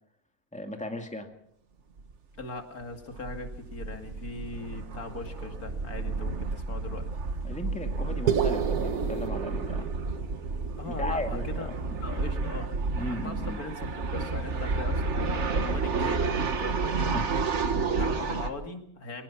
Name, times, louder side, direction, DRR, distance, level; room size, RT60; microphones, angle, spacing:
voice 1, 0.5-1.3 7.4-9.9 10.8-11.7 12.8-13.6 17.1-17.2, left 1 dB, 5° left, 4 dB, 2.1 m, -36 dB
sound 1, 2.0-2.1 2.4-2.5 2.8-18.5, right 4 dB, 50° right, 1.6 m, -31 dB
voice 2, 2.4-7.1 10.8-11.7 12.0-17.2 17.7-19.2, left 3 dB, 80° left, 5 dB, 2.8 m, -40 dB
sound 2, 8.3-12.7, right 8 dB, 85° right, 1.6 m, -32 dB
23.5 x 19.0 x 5.9 m, 0.71 s
omnidirectional pair, 1.5 m